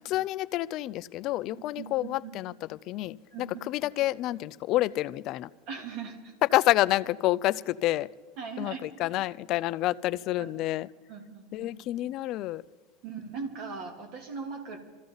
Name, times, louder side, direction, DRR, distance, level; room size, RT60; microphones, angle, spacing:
voice 1, 0.1-5.5 6.4-8.1 8.6-10.9 11.5-12.6, left 16 dB, 40° left, 0.4 m, -28 dB
voice 2, 1.8-2.3 3.3-3.5 5.7-6.3 8.4-8.8 10.4-10.5 11.1-11.7 13.0-14.8, right 5 dB, 45° right, 2.9 m, -39 dB
24.0 x 14.5 x 4.0 m
supercardioid pair, 165°, 0 cm